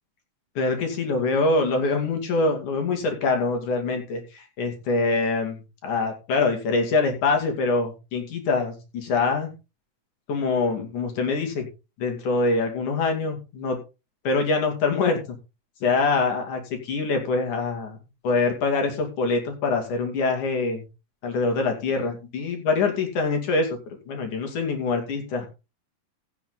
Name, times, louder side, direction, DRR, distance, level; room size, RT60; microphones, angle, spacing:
voice 1, 0.6-9.5 10.3-11.7 12.0-13.8 14.3-15.4 15.8-18.0 18.2-20.8 21.2-25.5, left 3 dB, 70° left, 4 dB, 3.9 m, -24 dB
16.0 x 6.9 x 3.9 m, 0.29 s
omnidirectional pair, 3.7 m